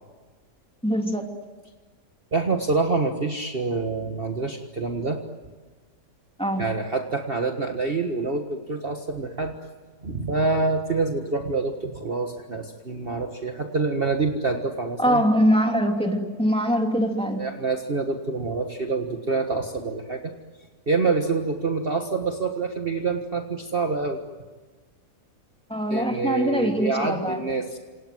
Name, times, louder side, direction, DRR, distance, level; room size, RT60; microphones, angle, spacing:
voice 1, 0.8-1.2 6.4-6.6 15.0-17.4 25.7-27.4, equal, 5° left, 2 dB, 2.9 m, -23 dB
voice 2, 2.3-5.2 6.6-9.5 10.0-15.2 17.3-20.3 20.9-24.2 25.9-27.8, right 3 dB, 35° right, 4 dB, 1.7 m, -26 dB
28.0 x 27.5 x 7.8 m, 1.3 s
omnidirectional pair, 1.7 m